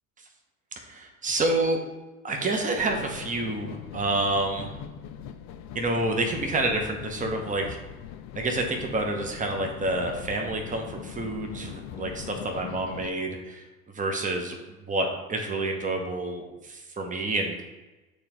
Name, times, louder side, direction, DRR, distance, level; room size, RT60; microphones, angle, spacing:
voice 1, 0.8-1.8 2.2-4.8 5.7-7.8 8.3-17.6, right 2 dB, 20° right, 3 dB, 1.1 m, -28 dB
sound 1, 2.8-13.1, left 9 dB, 40° left, 0.5 m, -41 dB
8.3 x 3.9 x 3.1 m, 1.1 s
figure-of-eight pair, 70°, 42 cm